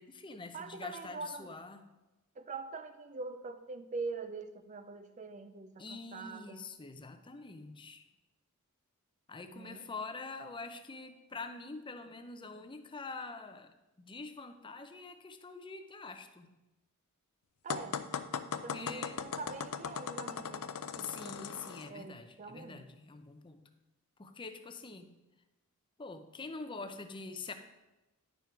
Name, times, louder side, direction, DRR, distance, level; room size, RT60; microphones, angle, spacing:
voice 1, 0.0-1.8 5.8-8.1 9.3-16.6 18.5-19.2 21.0-23.6 24.2-25.2 26.0-27.5, left 3 dB, 20° left, 8 dB, 0.5 m, -45 dB
voice 2, 0.5-1.5 2.4-6.7 9.5-9.9 17.6-18.0 18.6-20.6 20.9-22.9, right 4 dB, 35° right, 10 dB, 0.5 m, -44 dB
sound 1, 17.7-21.9, left 7 dB, 85° left, 0.5 m, -39 dB
10.5 x 4.7 x 4.6 m, 1.0 s
head